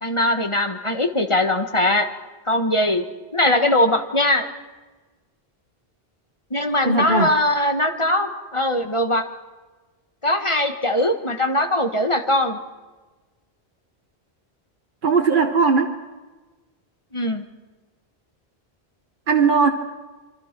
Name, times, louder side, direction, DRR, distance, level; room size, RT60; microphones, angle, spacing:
voice 1, 0.0-2.1 2.5-3.0 3.3-4.5 6.5-9.2 10.2-12.6 17.1-17.4, left 1 dB, 30° left, 6 dB, 1.6 m, -21 dB
voice 2, 6.8-7.4 15.0-16.0 19.3-19.7, right 4 dB, 55° right, 4 dB, 1.3 m, -18 dB
25.5 x 25.5 x 6.1 m, 1.3 s
omnidirectional pair, 1.1 m